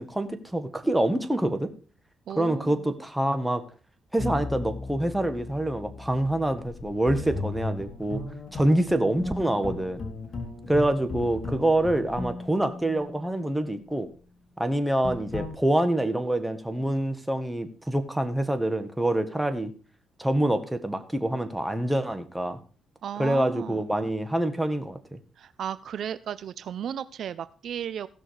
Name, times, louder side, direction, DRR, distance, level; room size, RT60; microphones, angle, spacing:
voice 1, 0.0-1.7 2.4-3.6 4.1-8.2 8.5-10.0 10.7-14.1 14.6-19.7 20.2-22.6 23.2-25.2, right 1 dB, 5° right, 9 dB, 1.6 m, -26 dB
voice 2, 2.3-2.9 23.0-23.9 25.4-28.1, right 9 dB, 65° right, 16 dB, 0.5 m, -35 dB
sound 1, 4.2-13.6 15.0-15.5, left 2 dB, 45° left, 2.9 m, -36 dB
16.0 x 6.3 x 4.8 m, 0.39 s
cardioid pair, 90°, 0 cm